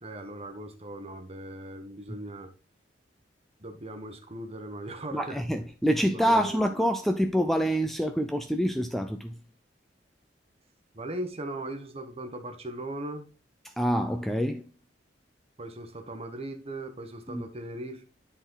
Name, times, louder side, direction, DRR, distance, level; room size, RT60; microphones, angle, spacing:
voice 1, 0.0-2.5 3.6-5.4 6.1-6.6 10.9-13.2 15.6-18.0, right 1 dB, 35° right, 1.1 m, -39 dB
voice 2, 5.1-9.3 13.8-14.6 17.3-17.4, equal, ahead, 0.5 m, -26 dB
10.5 x 4.2 x 3.9 m
head